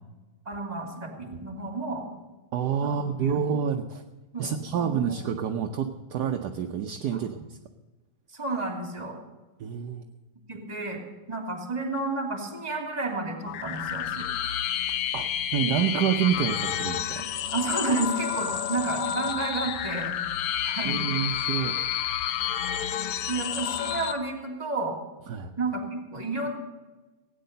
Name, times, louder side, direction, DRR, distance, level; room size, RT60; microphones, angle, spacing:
voice 1, 0.5-2.1 2.8-3.3 4.3-5.2 8.3-9.2 10.5-11.0 11.3-14.3 17.5-20.1 20.6-21.0 23.3-25.0 25.6-26.5, right 3 dB, 20° right, 1 dB, 2.7 m, -31 dB
voice 2, 2.5-4.0 4.4-7.6 9.6-10.1 15.1-15.3 15.5-17.2 20.8-21.9 25.3-25.5, right 8 dB, 65° right, 4 dB, 1.1 m, -28 dB
sound 1, 13.5-24.1, left 10 dB, 85° left, 1.7 m, -30 dB
17.0 x 9.5 x 6.7 m, 1.2 s
omnidirectional pair, 2.4 m